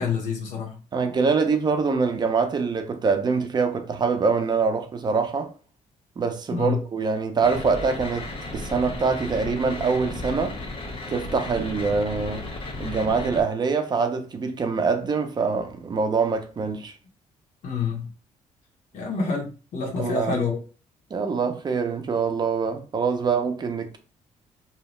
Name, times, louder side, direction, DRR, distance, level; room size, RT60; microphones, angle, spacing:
voice 1, 0.0-0.8 6.5-6.8 17.6-18.1 18.9-20.6, left 5 dB, 75° left, 0.9 m, -27 dB
voice 2, 0.9-5.5 6.2-10.6 11.1-12.4 12.8-16.9 19.9-20.4 21.1-24.0, right 5 dB, 35° right, 0.5 m, -24 dB
sound 1, 7.4-13.4, left 2 dB, 45° left, 0.9 m, -34 dB
2.7 x 2.0 x 3.0 m
cardioid pair, 110°, 13 cm